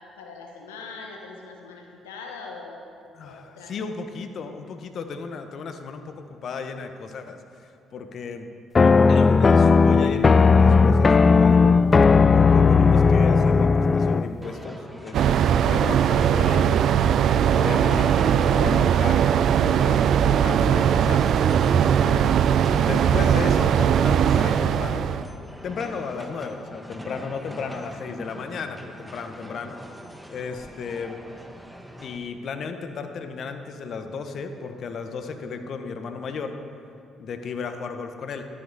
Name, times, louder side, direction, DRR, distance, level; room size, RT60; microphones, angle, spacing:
voice 1, 0.0-2.8 3.2-3.8 30.8-30.9, left 4 dB, 85° left, 1 dB, 1.1 m, -41 dB
voice 2, 3.1-8.5 9.0-11.8 12.3-16.7 17.2-22.3 22.8-25.1 25.6-29.8 30.3-31.2 32.0-36.6 37.2-38.4, left 5 dB, 55° left, 7 dB, 1.1 m, -34 dB
sound 1, 8.7-14.3, left 4 dB, 35° left, 0.4 m, -16 dB
sound 2, 14.4-32.2, equal, 5° right, 1.3 m, -42 dB
sound 3, 15.1-25.2, right 8 dB, 60° right, 0.4 m, -20 dB
13.5 x 12.5 x 4.1 m, 2.5 s
hypercardioid pair, 50°, 0 cm